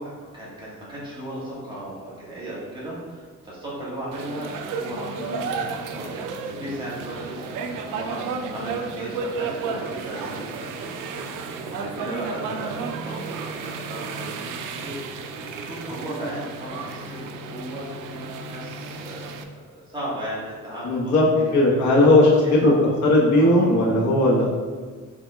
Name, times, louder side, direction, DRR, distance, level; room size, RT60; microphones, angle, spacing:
voice 1, 0.0-6.2 6.6-15.0 15.4-19.3 19.7-21.9 22.4-22.9 23.3-23.7, right 1 dB, 15° right, -8 dB, 1.5 m, -36 dB
sound 1, 4.1-19.4, right 4 dB, 80° right, 0.5 m, -33 dB
voice 2, 5.2-5.5 20.8-21.3 21.5-24.5, left 1 dB, 65° left, -3 dB, 1.1 m, -18 dB
5.8 x 3.6 x 2.3 m, 1.5 s
cardioid pair, 155°, 32 cm